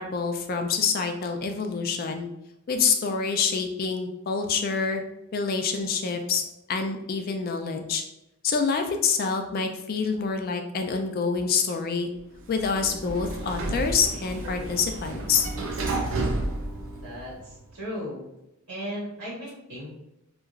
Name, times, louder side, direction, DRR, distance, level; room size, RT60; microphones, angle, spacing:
voice 1, 0.0-2.3 2.7-5.0 5.3-6.4 6.7-8.0 8.4-12.1 12.5-15.5, left 5 dB, 40° left, 5 dB, 0.3 m, -26 dB
Sliding door, 12.4-17.6, right 2 dB, 60° right, 0.5 m, -31 dB
voice 2, 17.0-18.2 18.7-19.9, equal, 80° right, -7 dB, 1.4 m, -36 dB
2.9 x 2.4 x 2.4 m, 0.88 s
head